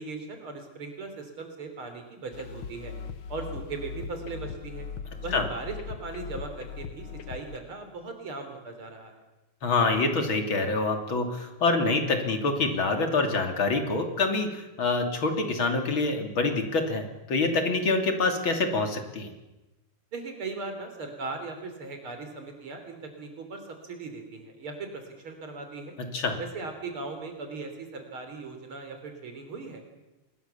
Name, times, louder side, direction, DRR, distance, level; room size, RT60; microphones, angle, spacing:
voice 1, 0.0-2.9 3.3-4.9 5.2-9.2 20.1-26.0 26.4-29.8, right 3 dB, 90° right, 6 dB, 4.5 m, -38 dB
sound 1, 2.3-7.6, left 6 dB, 85° left, 2.1 m, -39 dB
voice 2, 9.6-19.3 26.1-26.4, left 3 dB, 70° left, 5 dB, 3.6 m, -26 dB
25.0 x 21.5 x 7.1 m, 1.0 s
omnidirectional pair, 2.3 m